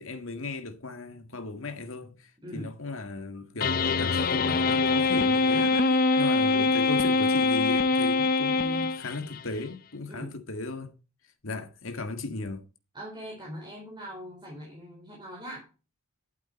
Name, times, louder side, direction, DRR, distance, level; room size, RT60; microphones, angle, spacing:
voice 1, 0.0-5.7 6.2-10.9 11.4-12.6, left 3 dB, 65° left, 1.9 m, -37 dB
voice 2, 2.4-2.7 5.5-6.7 10.1-10.4 12.9-15.7, equal, 20° right, 4.2 m, -41 dB
sound 1, 3.6-9.4, left 3 dB, 45° left, 0.6 m, -24 dB
12.0 x 8.6 x 4.2 m
head